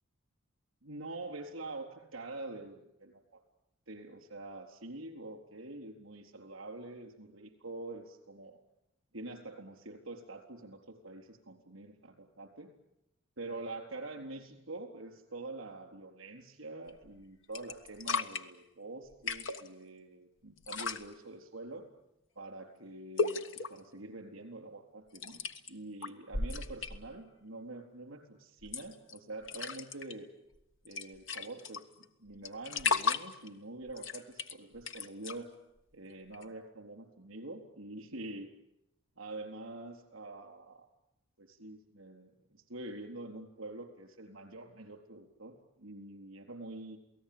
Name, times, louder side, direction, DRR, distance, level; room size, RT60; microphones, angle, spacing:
voice 1, 0.8-3.4 3.9-8.6 9.1-12.7 13.4-21.9 22.4-23.4 23.7-30.3 30.8-35.5 35.9-38.5 39.2-40.9 41.4-47.0, right 2 dB, 70° right, 6 dB, 4.0 m, -46 dB
sound 1, 16.9-17.2 17.5-18.4 19.1-19.7 20.6-21.0 23.2-23.8 25.1-25.7 26.0-27.1 28.6-29.2 29.4-30.1 30.5-30.6 30.8-32.0 32.4-33.5 33.9-35.4 36.3-36.4, left 5 dB, 60° left, 1.4 m, -35 dB
28.5 x 18.5 x 8.8 m, 0.85 s
head